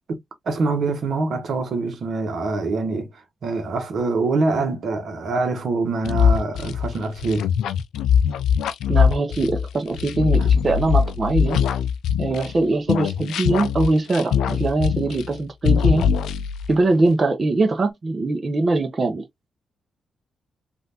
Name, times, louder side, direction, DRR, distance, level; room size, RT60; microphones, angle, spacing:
voice 1, 0.1-7.5, right 3 dB, 65° right, 1.1 m, -25 dB
sound 1, 6.0-12.6 12.9-15.4 15.6-16.7, left 7 dB, 85° left, 0.4 m, -21 dB
voice 2, 8.9-11.6 12.2-16.0 16.7-19.3, right 2 dB, 40° right, 0.8 m, -22 dB
3.2 x 2.6 x 2.8 m
supercardioid pair, 60°, 0 cm